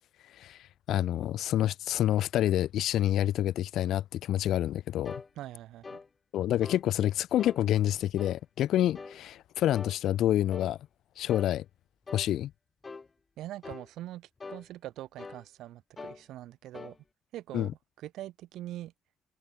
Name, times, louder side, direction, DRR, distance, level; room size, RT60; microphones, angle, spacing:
voice 1, 0.9-5.2 6.3-10.8 11.2-11.6 12.1-12.5 17.5-17.7, left 12 dB, 80° left, 0.7 m, -28 dB
sound 1, 5.1-5.3 5.8-6.1 6.6-6.9 7.4-7.6 8.2-8.4 9.0-9.2 9.7-10.0 10.5-10.7 11.3-11.5 12.1-12.3 12.8-13.1 13.6-13.9 14.4-14.7 15.2-15.5 16.0-16.2 16.7-17.0, left 4 dB, 30° left, 2.3 m, -43 dB
voice 2, 5.3-6.0 13.4-17.0 17.3-18.9, right 14 dB, 85° right, 5.1 m, -43 dB
cardioid pair, 90°, 0 cm